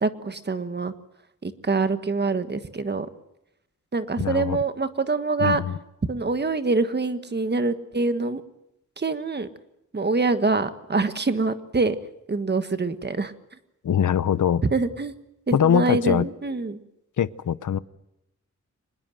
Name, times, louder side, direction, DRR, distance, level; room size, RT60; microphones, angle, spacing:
voice 1, 0.0-0.9 1.4-3.1 3.9-5.6 6.1-8.4 9.0-9.5 9.9-12.0 12.3-13.3 14.7-15.1 15.5-16.8, right 3 dB, 35° right, 10 dB, 1.5 m, -25 dB
voice 2, 4.2-4.6 5.4-5.7 13.8-14.6 15.5-16.2 17.2-17.8, left 8 dB, 90° left, 17 dB, 0.8 m, -22 dB
25.5 x 20.5 x 7.8 m, 0.84 s
wide cardioid pair, 165°, 30 cm